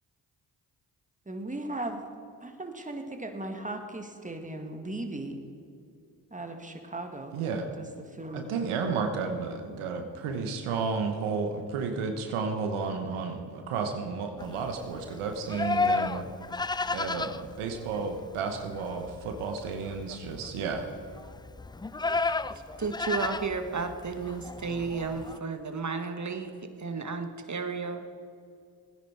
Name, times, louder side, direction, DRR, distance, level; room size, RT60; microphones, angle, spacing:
voice 1, 1.3-2.0 2.4-5.4 6.3-7.3 7.8-7.9 8.2-8.5, right 2 dB, 15° right, 4 dB, 2.0 m, -37 dB
voice 2, 7.3-7.7 8.3-16.2 16.9-20.9, right 5 dB, 80° right, 5 dB, 1.3 m, -32 dB
Livestock farm animals working animals, 14.4-25.4, left 3 dB, 10° left, 0.3 m, -33 dB
voice 3, 22.8-28.1, right 4 dB, 35° right, 7 dB, 1.6 m, -33 dB
17.0 x 10.0 x 4.6 m, 2.4 s
supercardioid pair, 45°, 49 cm